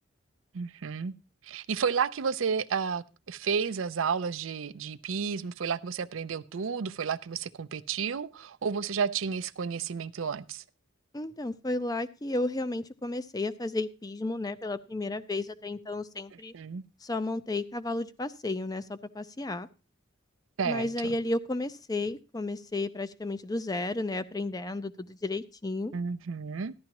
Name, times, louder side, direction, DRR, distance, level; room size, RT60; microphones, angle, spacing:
voice 1, 0.5-1.1 1.4-10.6 16.5-16.8 20.6-21.2 25.9-26.7, right 6 dB, 85° right, 12 dB, 0.5 m, -31 dB
voice 2, 11.1-16.5 17.0-19.7 20.6-25.9, left 2 dB, 20° left, 13 dB, 0.5 m, -33 dB
14.0 x 11.5 x 3.0 m, 0.31 s
head